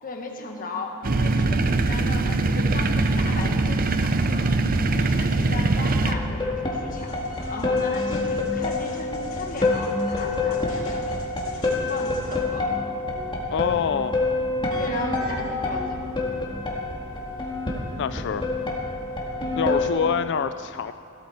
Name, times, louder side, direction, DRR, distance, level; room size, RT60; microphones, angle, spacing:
voice 1, 0.0-4.5 4.9-7.2 7.5-11.1 11.8-12.7 14.8-16.2 19.4-19.9, left 2 dB, 40° left, 2 dB, 1.6 m, -36 dB
sound 1, 1.0-6.1, right 2 dB, 45° right, 0.6 m, -22 dB
sound 2, 6.0-19.9, left 2 dB, 25° left, 1.8 m, -27 dB
sound 3, 6.9-12.4, left 2 dB, 85° left, 2.6 m, -43 dB
voice 2, 13.5-14.2 18.0-18.4 19.6-20.9, left 7 dB, 55° left, 12 dB, 0.3 m, -25 dB
16.5 x 13.0 x 4.3 m, 2.5 s
head